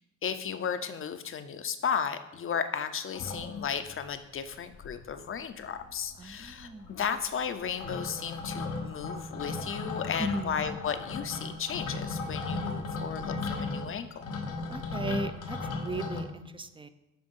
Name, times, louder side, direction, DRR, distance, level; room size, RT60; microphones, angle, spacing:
voice 1, 0.2-14.2, left 7 dB, 45° left, 10 dB, 0.7 m, -34 dB
sound 1, 3.1-4.0 4.5-4.6 4.7-5.4 5.6-16.2, left 4 dB, 90° left, 1.2 m, -36 dB
voice 2, 6.2-7.0 10.2-10.6 14.7-16.9, right 3 dB, 15° right, 11 dB, 0.6 m, -37 dB
10.0 x 3.5 x 5.5 m, 0.89 s
cardioid pair, 90°, 30 cm